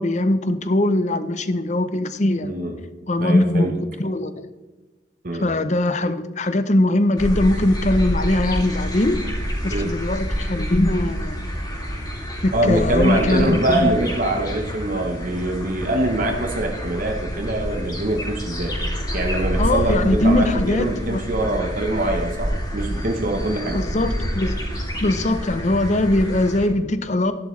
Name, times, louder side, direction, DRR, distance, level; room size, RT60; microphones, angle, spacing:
voice 1, 0.0-2.5 3.1-3.7 4.0-4.5 5.4-9.2 9.6-11.4 12.4-14.0 19.6-21.2 23.7-24.6 25.0-27.3, left 1 dB, 40° left, 11 dB, 0.7 m, -21 dB
voice 2, 2.4-2.8 3.2-3.7 5.2-5.5 9.7-9.9 12.5-18.7 19.1-23.8, right 1 dB, 50° right, 3 dB, 1.0 m, -24 dB
sound 1, 7.2-26.7, equal, 20° left, 2.4 m, -27 dB
12.0 x 11.0 x 3.2 m, 1.2 s
head